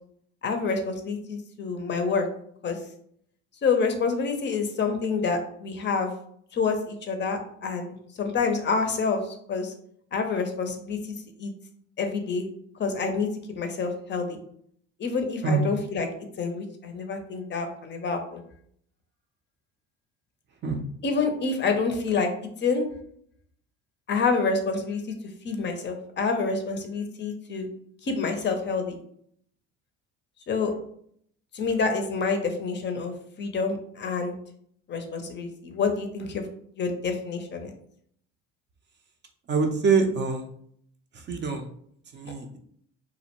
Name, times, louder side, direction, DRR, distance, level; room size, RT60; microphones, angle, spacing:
voice 1, 0.4-2.3 2.6-2.8 3.6-6.1 6.5-9.7 10.1-11.5 12.0-12.5 12.8-13.3 13.6-14.4 15.0-16.1 16.4-18.4 21.0-22.3 22.6-22.8 24.1-25.0 25.4-27.7 28.0-29.0 30.5-30.7 31.5-34.3 34.9-36.4 36.8-37.7, left 4 dB, 35° left, 6 dB, 0.5 m, -27 dB
voice 2, 39.5-40.5 41.3-41.7 42.1-42.6, right 5 dB, 35° right, 4 dB, 0.4 m, -24 dB
2.4 x 2.1 x 2.9 m, 0.65 s
supercardioid pair, 90°, 32 cm